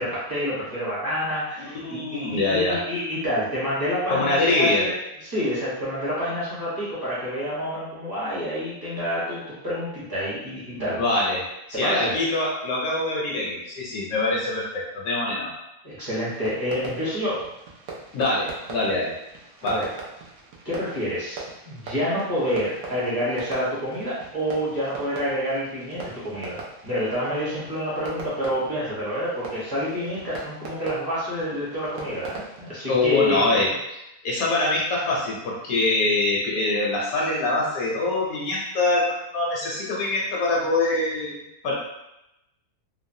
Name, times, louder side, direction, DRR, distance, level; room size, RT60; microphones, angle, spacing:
voice 1, 0.0-4.9 5.2-11.0 11.7-12.1 15.8-17.4 19.6-19.9 20.6-21.4 21.6-33.8, equal, 20° right, -10 dB, 0.8 m, -28 dB
voice 2, 1.7-2.8 4.1-4.8 11.0-15.5 18.1-19.1 19.6-19.8 32.9-41.7, left 2 dB, 70° left, -3 dB, 1.0 m, -24 dB
Fireworks, 16.2-32.7, right 3 dB, 65° right, 0.8 m, -41 dB
3.1 x 2.0 x 2.6 m, 0.88 s
omnidirectional pair, 1.6 m